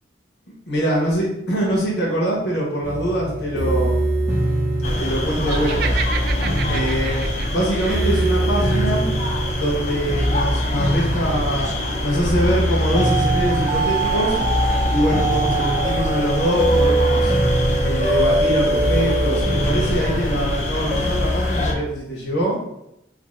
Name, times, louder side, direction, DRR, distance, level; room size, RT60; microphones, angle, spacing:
voice 1, 0.7-4.0 5.0-6.0 6.7-9.1 9.5-11.7 12.0-14.4 14.9-17.3 17.8-22.6, equal, 65° left, -4 dB, 1.0 m, -23 dB
sound 1, 2.8-21.7, right 1 dB, 15° right, 0.6 m, -22 dB
sound 2, 4.8-21.7, left 1 dB, 40° left, 0.5 m, -26 dB
Laughter, 5.4-8.5, right 6 dB, 60° right, 0.3 m, -31 dB
2.7 x 2.6 x 4.1 m, 0.82 s
head